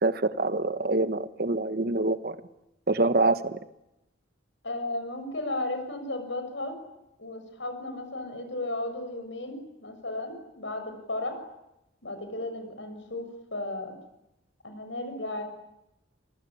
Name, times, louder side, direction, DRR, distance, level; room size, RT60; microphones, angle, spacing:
voice 1, 0.0-2.4 2.9-3.6, right 2 dB, 50° right, 12 dB, 1.3 m, -25 dB
voice 2, 4.6-6.8 7.2-11.4 12.0-13.9 14.6-15.4, left 2 dB, 75° left, 7 dB, 6.7 m, -34 dB
29.0 x 23.0 x 8.8 m, 0.88 s
head